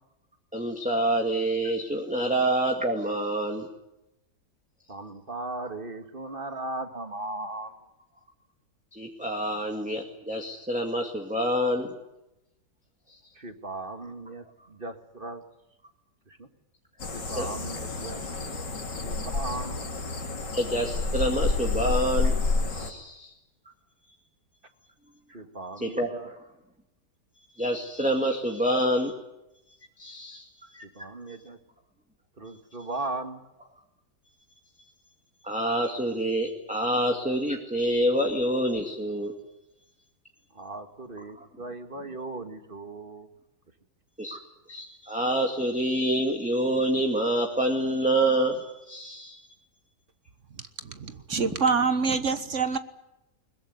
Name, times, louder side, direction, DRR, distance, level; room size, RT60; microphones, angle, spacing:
voice 1, 0.5-3.7 8.9-11.9 13.1-13.2 17.4-17.5 20.5-22.4 22.7-23.3 25.8-26.3 27.6-29.1 30.0-30.5 30.7-30.8 35.4-39.3 41.4-41.5 44.2-44.4 44.7-49.4, right 1 dB, 5° right, 2 dB, 2.1 m, -27 dB
voice 2, 4.9-7.7 13.4-15.4 16.3-16.5 17.1-18.2 19.0-19.8 25.3-26.3 30.8-31.6 32.4-33.4 40.5-43.3, right 2 dB, 30° right, 7 dB, 2.0 m, -37 dB
sound 1, 17.0-22.9, left 3 dB, 90° left, 3.3 m, -29 dB
voice 3, 50.8-52.8, right 5 dB, 50° right, 11 dB, 1.5 m, -26 dB
22.0 x 21.0 x 9.7 m, 0.92 s
omnidirectional pair, 1.8 m